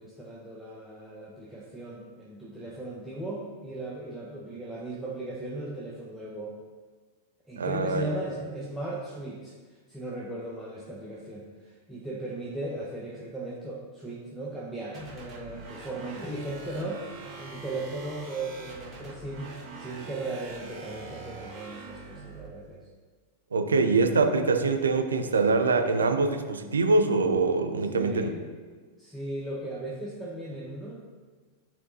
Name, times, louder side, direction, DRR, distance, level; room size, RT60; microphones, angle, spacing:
voice 1, 0.0-6.6 7.5-9.6 9.9-22.8 27.9-28.4 29.0-31.0, right 1 dB, 5° right, -5 dB, 0.8 m, -37 dB
voice 2, 7.6-8.0 23.5-28.3, right 3 dB, 70° right, 6 dB, 0.5 m, -24 dB
sound 1, 14.9-22.5, right 3 dB, 30° right, 1.4 m, -44 dB
9.6 x 4.5 x 2.7 m, 1.4 s
figure-of-eight pair, 90°, 0 cm